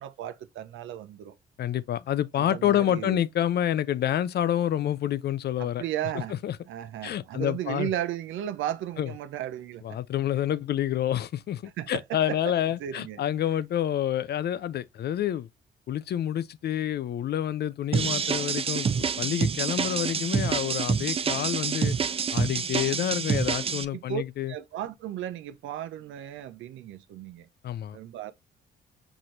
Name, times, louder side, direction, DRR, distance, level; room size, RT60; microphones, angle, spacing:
voice 1, 0.0-1.3 2.3-3.2 5.6-6.3 6.7-10.0 11.8-12.4 12.8-13.2 23.9-24.2 24.5-27.5 27.9-28.3, right 11 dB, 80° right, 0.6 m, -35 dB
voice 2, 1.6-5.8 6.4-6.6 7.0-7.9 9.0-9.1 9.8-15.5 15.9-22.0 22.3-24.5 27.6-28.0, left 11 dB, 55° left, 0.5 m, -28 dB
sound 1, 17.9-23.8, right 6 dB, 30° right, 0.4 m, -27 dB
6.0 x 2.6 x 3.1 m
cardioid pair, 90°, 20 cm